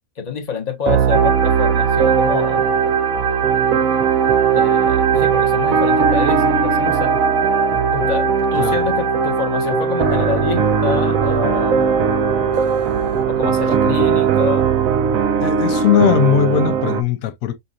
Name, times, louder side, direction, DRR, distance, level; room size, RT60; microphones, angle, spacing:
voice 1, 0.2-2.7 4.5-7.1 7.9-11.8 13.3-14.7, left 6 dB, 35° left, 1.0 m, -26 dB
sound 1, 0.9-17.0, right 8 dB, 80° right, 1.1 m, -19 dB
sound 2, 1.1-13.2, right 3 dB, 50° right, 0.4 m, -22 dB
voice 2, 15.4-17.6, left 9 dB, 90° left, 1.1 m, -18 dB
5.5 x 2.5 x 2.5 m
omnidirectional pair, 1.4 m